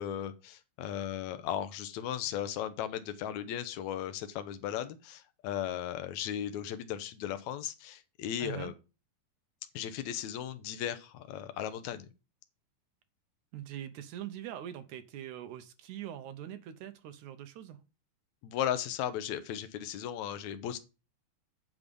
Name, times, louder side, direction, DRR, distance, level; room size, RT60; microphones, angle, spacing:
voice 1, 0.0-8.7 9.7-12.1 18.4-20.8, left 10 dB, 75° left, 11 dB, 1.7 m, -36 dB
voice 2, 8.4-8.7 13.5-17.8, right 11 dB, 75° right, 9 dB, 1.9 m, -43 dB
8.7 x 6.1 x 5.3 m, 0.30 s
omnidirectional pair, 4.1 m